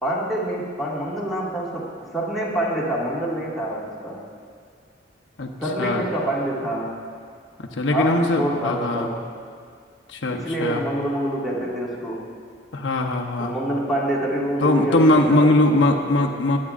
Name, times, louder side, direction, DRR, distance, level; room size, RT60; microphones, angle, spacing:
voice 1, 0.0-4.2 5.6-6.9 7.9-9.1 10.3-12.3 13.4-15.5 15.8-16.3, right 1 dB, ahead, -7 dB, 2.0 m, -26 dB
voice 2, 5.8-6.1 7.7-9.1 10.1-10.8 12.7-13.5 14.6-16.6, left 1 dB, 80° left, 1 dB, 0.9 m, -20 dB
21.0 x 9.7 x 2.5 m, 2.2 s
head